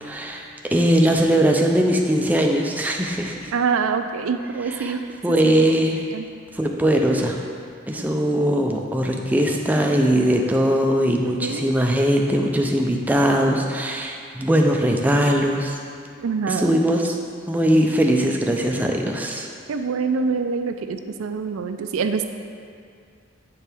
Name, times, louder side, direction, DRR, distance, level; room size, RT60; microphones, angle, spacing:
voice 1, 0.0-3.5 4.8-5.0 5.2-6.0 6.5-7.4 7.9-15.8 16.5-17.2 17.5-19.5, equal, 10° right, 1 dB, 0.4 m, -20 dB
voice 2, 3.5-5.6 6.1-6.3 11.2-11.7 16.2-16.8 19.7-22.3, right 5 dB, 90° right, 8 dB, 0.4 m, -25 dB
8.5 x 4.6 x 3.4 m, 2.3 s
head